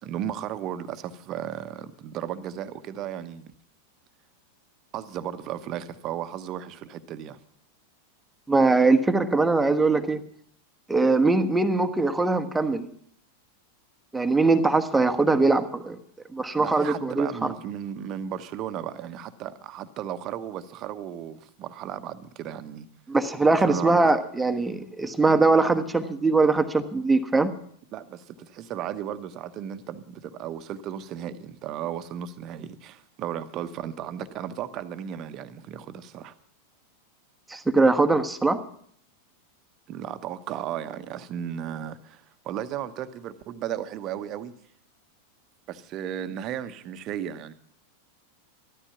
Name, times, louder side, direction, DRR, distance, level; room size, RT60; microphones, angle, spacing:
voice 1, 0.0-3.5 4.9-7.4 16.6-22.9 23.4-24.1 27.9-36.3 39.9-44.5 45.7-47.5, right 10 dB, 35° right, 1.0 m, -35 dB
voice 2, 8.5-10.2 10.9-12.9 14.1-16.0 16.3-17.3 23.1-27.5 37.5-38.6, right 3 dB, 5° right, 1.2 m, -21 dB
14.0 x 13.0 x 5.9 m
figure-of-eight pair, 90°, 0 cm